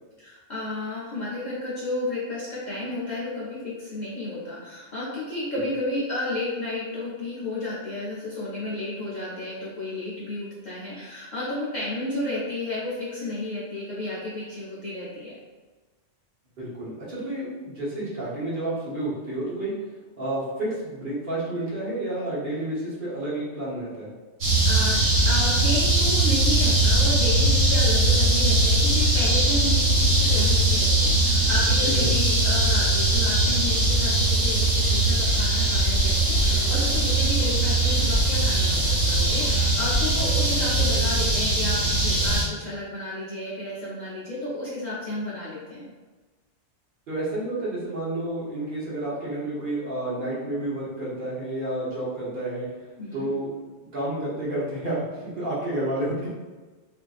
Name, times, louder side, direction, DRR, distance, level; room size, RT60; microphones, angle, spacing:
voice 1, 0.2-15.4 24.6-45.8 53.0-53.3, left 2 dB, 50° left, -8 dB, 0.6 m, -32 dB
voice 2, 16.6-19.7 20.2-24.1 31.8-32.1 47.1-52.7 53.1-53.6 53.9-56.3, right 1 dB, 50° right, -8 dB, 0.9 m, -30 dB
sound 1, 24.4-42.4, right 2 dB, 85° right, 1.3 m, -21 dB
2.6 x 2.5 x 2.3 m, 1.3 s
omnidirectional pair, 1.2 m